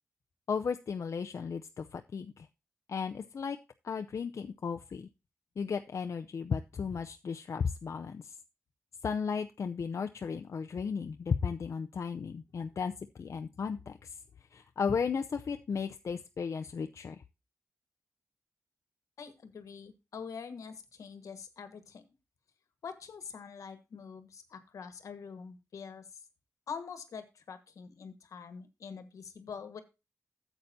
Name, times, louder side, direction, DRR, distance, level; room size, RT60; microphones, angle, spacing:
voice 1, 0.5-2.5 2.9-3.6 3.8-5.1 5.6-8.4 9.0-12.9 13.2-14.2 14.5-17.2, left 6 dB, 65° left, 6 dB, 0.5 m, -35 dB
voice 2, 19.2-22.0 22.8-26.2 26.7-29.8, left 6 dB, 85° left, 9 dB, 1.3 m, -45 dB
13.0 x 8.1 x 2.7 m, 0.27 s
cardioid pair, 60°, 5 cm